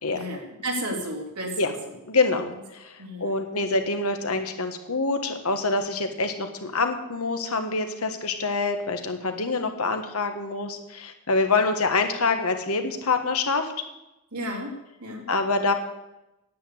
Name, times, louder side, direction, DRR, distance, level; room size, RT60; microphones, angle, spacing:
voice 1, 0.1-1.9 2.3-2.4 3.0-3.7 14.3-14.7 15.0-15.3, equal, 90° right, 0 dB, 3.0 m, -33 dB
voice 2, 2.1-13.7 15.3-15.7, left 3 dB, 70° left, 6 dB, 1.5 m, -26 dB
10.0 x 8.4 x 8.4 m, 0.94 s
head